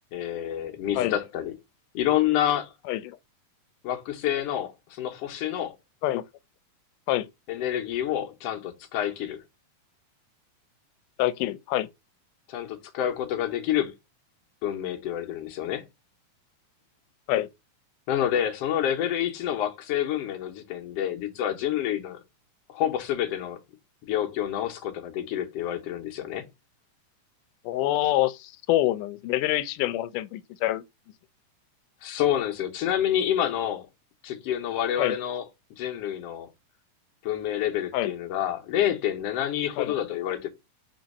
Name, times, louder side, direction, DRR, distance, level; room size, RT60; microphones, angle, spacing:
voice 1, 0.1-1.5 1.9-2.7 3.8-5.8 7.5-9.4 12.5-13.9 14.6-15.9 18.1-22.2 22.7-23.6 24.0-26.5 32.0-33.9 34.2-35.5 35.8-36.5 37.2-40.5, left 11 dB, 65° left, 1.8 m, -28 dB
voice 2, 11.2-11.9 17.3-17.5 27.7-30.8 35.0-35.2 37.9-38.1 39.8-40.0, left 14 dB, 85° left, 2.2 m, -26 dB
4.5 x 3.9 x 5.3 m
omnidirectional pair, 3.6 m